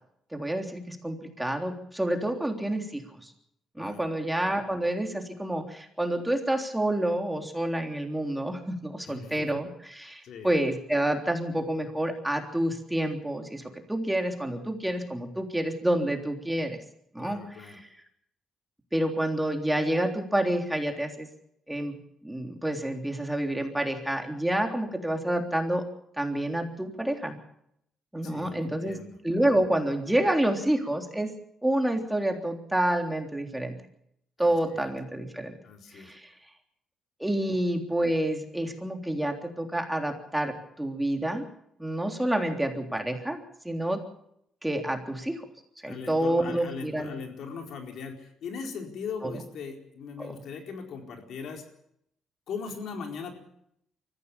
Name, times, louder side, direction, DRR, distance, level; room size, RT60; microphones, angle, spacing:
voice 1, 0.3-3.3 3.7-13.6 13.9-16.8 17.1-17.9 18.9-21.3 21.7-22.0 22.2-25.8 26.2-27.3 28.1-29.0 29.2-31.3 31.6-33.7 34.4-35.5 35.9-36.3 37.2-41.4 41.8-44.0 44.6-45.5 45.8-47.1 49.2-49.3 50.2-50.3, right 1 dB, 5° right, 4 dB, 3.4 m, -28 dB
voice 2, 9.0-9.6 10.2-10.5 17.2-17.8 28.2-29.2 34.4-34.9 35.6-36.1 45.9-51.7 52.5-53.3, left 5 dB, 70° left, 3 dB, 4.4 m, -39 dB
23.5 x 15.5 x 7.2 m, 0.74 s
cardioid pair, 90°, 0 cm